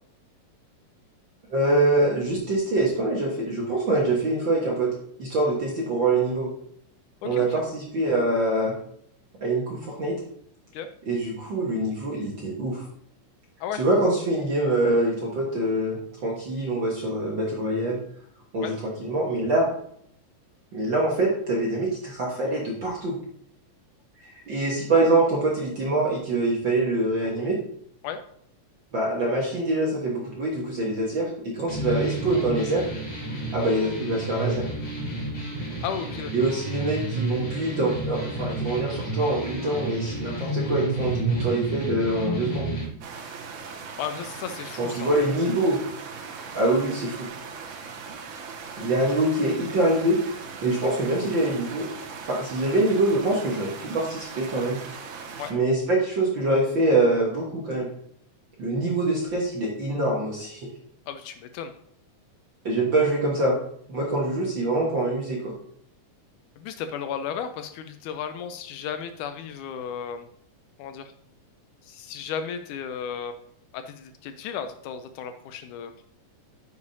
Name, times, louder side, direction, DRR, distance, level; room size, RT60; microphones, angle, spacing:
voice 1, 1.5-4.9 5.2-6.5 7.2-8.8 9.4-10.1 11.1-12.8 13.8-18.0 18.5-18.7 19.0-19.7 20.7-23.2 24.3-27.6 28.9-32.9 33.5-34.7 36.3-42.7 44.8-45.8 46.5-47.3 48.8-50.2 50.6-51.9 52.3-54.8 55.5-57.9 58.6-60.7 62.6-63.6 63.9-65.5, right 2 dB, 50° right, -3 dB, 1.4 m, -24 dB
voice 2, 7.2-7.7 10.7-10.9 13.6-13.8 18.6-18.7 28.0-28.2 35.8-36.3 44.0-45.1 55.4-55.5 61.1-61.7 66.6-70.3 70.8-71.1 71.8-73.4 73.7-76.1, left 7 dB, 80° left, 9 dB, 1.9 m, -34 dB
sound 1, 31.7-42.8, right 2 dB, 40° left, 2.9 m, -30 dB
sound 2, 43.0-55.5, right 5 dB, 70° right, 2.3 m, -39 dB
9.7 x 6.9 x 2.7 m, 0.69 s
omnidirectional pair, 3.8 m